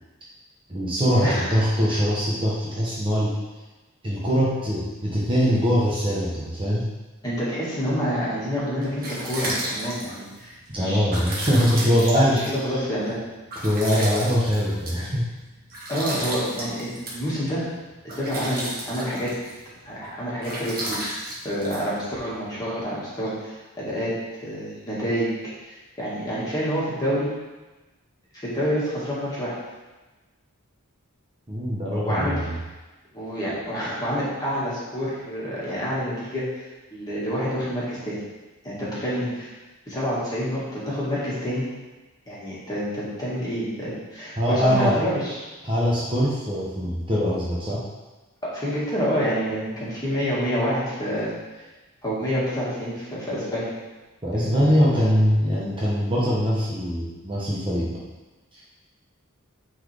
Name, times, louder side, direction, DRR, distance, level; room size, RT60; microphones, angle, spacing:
voice 1, 0.7-3.4 4.0-6.9 10.7-12.8 13.6-15.3 31.5-32.6 44.4-45.0 45.6-47.9 54.2-58.0 58.5-58.6, equal, 25° right, -6 dB, 1.0 m, -22 dB
voice 2, 1.2-1.6 1.9-2.0 7.2-11.0 11.7-13.2 15.9-17.6 18.0-19.3 19.9-21.1 21.4-24.1 24.4-25.3 25.6-27.3 28.4-29.6 31.9-32.3 33.1-38.2 38.6-39.5 39.9-41.7 42.3-45.4 48.4-51.3 52.0-53.7 54.3-54.6, equal, 20° left, -8 dB, 2.2 m, -28 dB
sound 1, 8.8-22.5, right 1 dB, 40° right, 1.7 m, -34 dB
9.6 x 4.0 x 3.6 m, 1.2 s
head